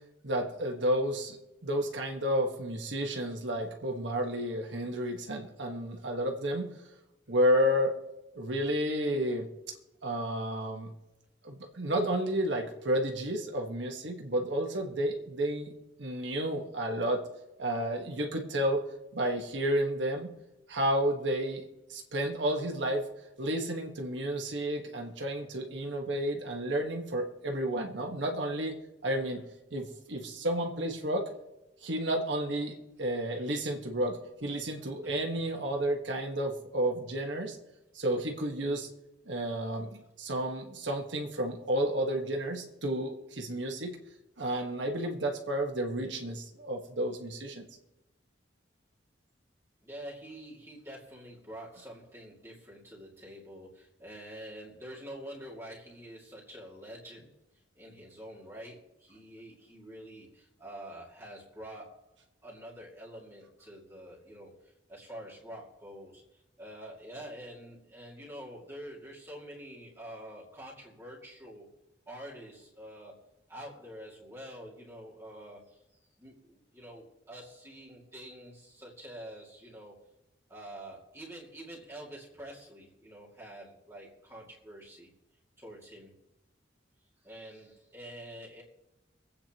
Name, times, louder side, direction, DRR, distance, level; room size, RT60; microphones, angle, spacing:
voice 1, 0.2-1.4 1.6-6.8 7.3-7.9 8.3-9.5 10.0-10.9 11.4-15.7 16.0-17.2 17.6-18.8 19.1-20.3 20.7-23.1 23.4-28.7 29.0-29.4 29.7-31.3 31.8-37.6 37.9-38.9 39.3-44.0 44.4-47.7, right 1 dB, 75° right, 2 dB, 1.5 m, -31 dB
voice 2, 35.0-35.8 49.8-57.3 57.7-62.0 62.4-71.7 72.1-73.1 73.5-80.0 80.5-85.1 85.6-86.2 87.2-88.6, equal, 15° right, -5 dB, 2.3 m, -47 dB
24.5 x 8.7 x 3.0 m, 0.95 s
head